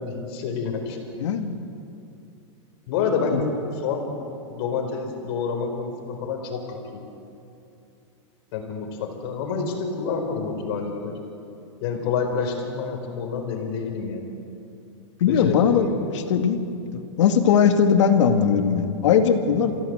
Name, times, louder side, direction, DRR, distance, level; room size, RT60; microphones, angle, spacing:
voice 1, 0.0-1.0 2.9-3.5 3.8-4.2 4.5-7.0 8.5-11.2 11.8-14.3 15.2-16.1, left 5 dB, 55° left, 4 dB, 4.5 m, -28 dB
voice 2, 1.2-1.5 3.3-3.4 15.2-15.9 16.1-19.8, left 7 dB, 70° left, 6 dB, 2.2 m, -20 dB
27.0 x 16.5 x 8.1 m, 2.7 s
supercardioid pair, 145°, 16 cm